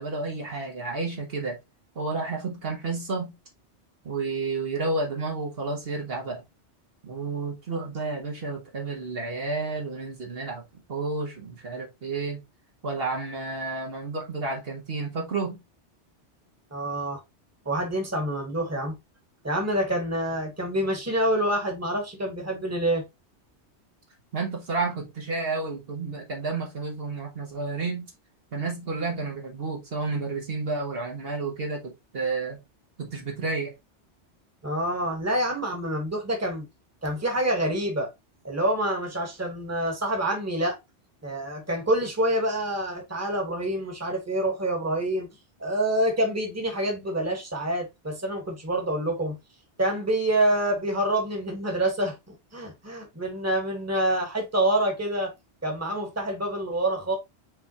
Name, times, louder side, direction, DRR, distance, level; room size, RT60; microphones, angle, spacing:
voice 1, 0.0-1.6 2.0-3.3 4.0-6.4 7.0-12.4 12.8-15.6 24.3-28.1 28.5-32.6 33.0-33.7, right 3 dB, 55° right, 1.3 m, -31 dB
voice 2, 16.7-17.2 17.6-19.0 19.4-23.0 34.6-36.7 37.0-38.1 38.4-40.8 41.2-45.3 45.6-49.4 49.8-55.3 55.6-57.2, right 1 dB, 15° right, 1.3 m, -27 dB
5.4 x 3.4 x 2.8 m
omnidirectional pair, 1.2 m